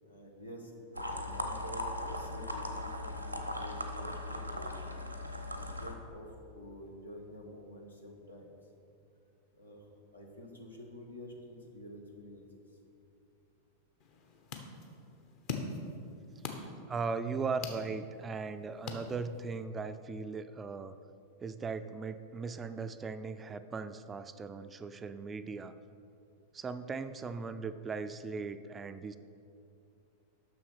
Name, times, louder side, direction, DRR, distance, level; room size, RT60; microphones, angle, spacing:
voice 1, 0.0-3.3 3.5-4.8 5.5-8.5 9.5-9.8 10.1-12.4, equal, 80° left, 0 dB, 1.3 m, -49 dB
sound 1, 1.0-5.9, left 1 dB, 90° right, 0.8 m, -38 dB
sound 2, 14.0-19.6, left 3 dB, 45° left, 0.9 m, -44 dB
voice 2, 16.6-21.0 21.4-25.7 26.5-29.2, right 4 dB, 20° right, 11 dB, 0.3 m, -38 dB
7.1 x 6.2 x 6.2 m, 2.6 s
figure-of-eight pair, 90°, 0 cm